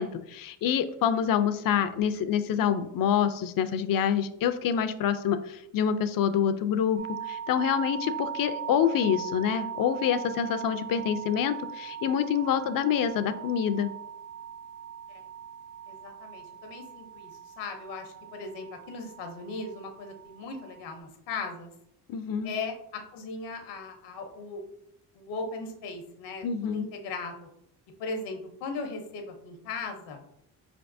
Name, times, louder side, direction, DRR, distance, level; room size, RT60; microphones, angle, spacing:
voice 1, 0.0-7.0 7.3-13.9 22.1-22.5 26.4-26.8, left 8 dB, 55° left, 12 dB, 0.5 m, -26 dB
sound 1, 7.0-21.0, right 8 dB, 50° right, 1.0 m, -40 dB
voice 2, 15.9-21.7 22.4-24.6 25.1-27.5 28.0-30.2, left 3 dB, 85° left, 5 dB, 0.9 m, -38 dB
4.6 x 3.4 x 2.6 m, 0.75 s
supercardioid pair, 70°, 40 cm